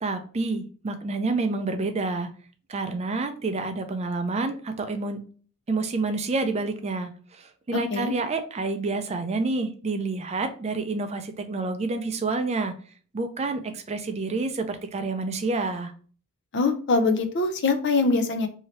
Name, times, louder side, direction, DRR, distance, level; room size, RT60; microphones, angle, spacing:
voice 1, 0.0-2.3 2.7-5.2 5.7-7.1 7.7-12.7 13.1-15.9, right 3 dB, 30° right, 7 dB, 0.4 m, -28 dB
voice 2, 7.7-8.1 16.5-18.5, left 3 dB, 55° left, 7 dB, 0.5 m, -23 dB
2.8 x 2.8 x 3.1 m, 0.41 s
head